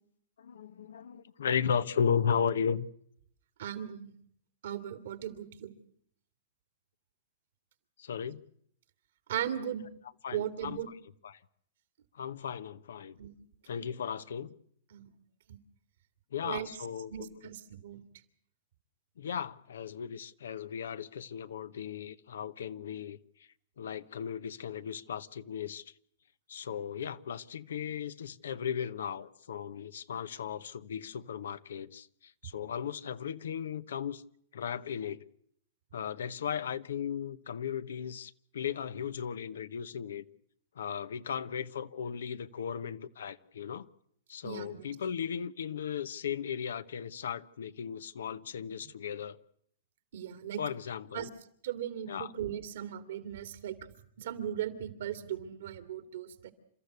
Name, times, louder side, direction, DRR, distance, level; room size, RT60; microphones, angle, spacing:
voice 1, 0.4-2.9 8.0-8.4 10.2-10.8 11.2-11.4 12.1-13.2 13.7-14.5 16.3-17.3 19.2-23.2 23.8-25.8 26.5-34.2 34.5-35.2 35.9-40.2 40.8-43.9 44.3-49.4 50.6-51.3 52.1-52.3, left 7 dB, 80° left, 0.9 m, -36 dB
voice 2, 3.6-4.1 4.6-5.7 9.3-9.8 10.3-10.9 13.2-13.4 13.7-13.9 14.9-15.1 15.5-15.6 16.4-16.7 17.1-18.0 44.4-45.0 48.8-48.9 50.1-50.6 51.1-51.3 51.6-53.7 54.2-56.5, right 10 dB, 70° right, 2.5 m, -38 dB
29.0 x 13.5 x 8.2 m
hypercardioid pair, 135°, 0 cm